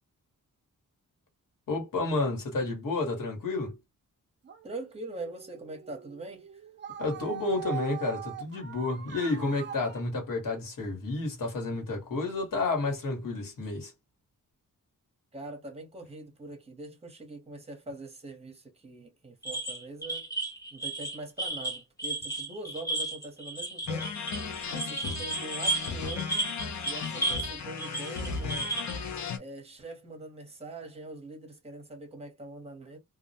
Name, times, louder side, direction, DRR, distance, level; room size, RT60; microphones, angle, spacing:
voice 1, 1.7-3.8 7.0-13.9, left 3 dB, 80° left, 1.2 m, -30 dB
sound 1, 4.4-10.1, right 9 dB, 35° right, 0.4 m, -42 dB
voice 2, 4.6-6.6 15.3-20.3 20.7-24.2 24.7-26.5 26.8-28.7 29.3-33.0, right 2 dB, 20° right, 0.8 m, -43 dB
sound 2, 19.4-27.5 27.8-28.9, right 2 dB, 10° left, 0.6 m, -33 dB
sound 3, 23.9-29.4, left 5 dB, 60° left, 0.6 m, -35 dB
2.3 x 2.1 x 2.7 m
wide cardioid pair, 155°, 32 cm